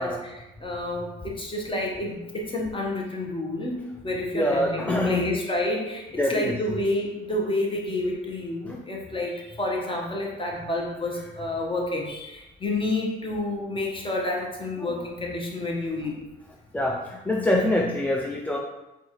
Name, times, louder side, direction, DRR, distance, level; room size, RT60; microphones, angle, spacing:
voice 1, 0.0-16.3, left 2 dB, 25° left, -1 dB, 0.9 m, -29 dB
voice 2, 4.3-5.3 6.2-6.6 8.6-8.8 14.8-14.9 16.7-18.6, left 1 dB, 10° left, -1 dB, 0.3 m, -25 dB
4.5 x 2.4 x 2.8 m, 0.97 s
cardioid pair, 90°, 20 cm